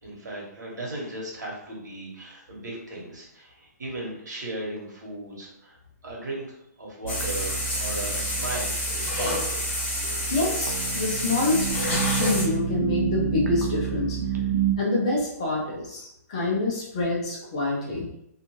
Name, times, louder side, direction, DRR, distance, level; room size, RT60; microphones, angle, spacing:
voice 1, 0.0-5.8 6.0-9.6, right 1 dB, 85° right, -3 dB, 1.3 m, -36 dB
sound 1, 7.0-14.7, right 8 dB, 65° right, 0.5 m, -30 dB
sound 2, 7.1-12.5, left 1 dB, 45° left, 0.9 m, -29 dB
voice 2, 10.3-14.2 14.8-18.1, left 2 dB, 20° left, -4 dB, 0.4 m, -26 dB
2.5 x 2.4 x 3.0 m, 0.77 s
hypercardioid pair, 180°, 9 cm